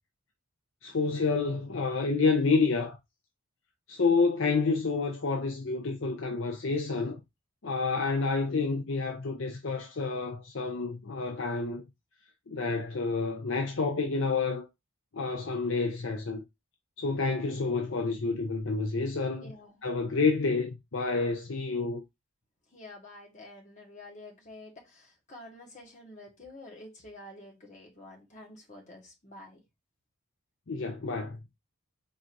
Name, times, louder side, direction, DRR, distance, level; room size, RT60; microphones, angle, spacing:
voice 1, 0.8-3.0 3.9-7.2 7.6-11.8 12.5-14.7 15.1-16.4 17.0-19.5 19.8-22.0 30.7-31.4, left 4 dB, 55° left, 0.6 m, -29 dB
voice 2, 19.4-19.8 22.7-29.6, left 1 dB, 35° left, 1.3 m, -49 dB
4.5 x 3.8 x 2.6 m
head